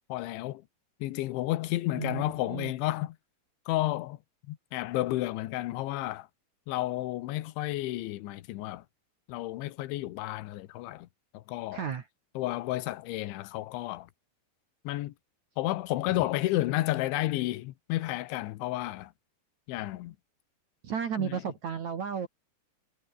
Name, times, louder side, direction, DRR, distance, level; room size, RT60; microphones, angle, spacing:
voice 1, 0.1-0.6 1.0-3.2 3.7-4.2 4.5-6.3 6.7-8.8 9.3-11.1 11.3-11.8 12.4-14.1 14.9-15.1 15.6-19.1 19.7-20.2 21.2-21.4, left 17 dB, 75° left, 3.3 m, -31 dB
voice 2, 1.9-2.7 11.7-12.0 16.1-16.2 20.8-22.3, right 7 dB, 55° right, 2.2 m, -34 dB
omnidirectional pair, 5.7 m